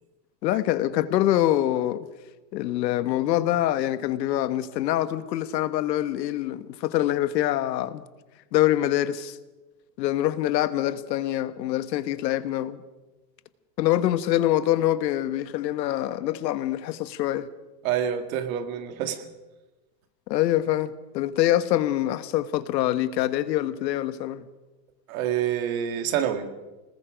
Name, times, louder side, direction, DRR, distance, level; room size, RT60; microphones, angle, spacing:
voice 1, 0.4-2.1 2.5-8.0 8.5-9.4 10.0-12.8 13.8-17.5 20.3-24.4, left 13 dB, 85° left, 1.4 m, -25 dB
voice 2, 17.8-19.3 25.1-26.5, right 9 dB, 55° right, 2.1 m, -27 dB
26.5 x 19.5 x 5.2 m
supercardioid pair, 170°, 49 cm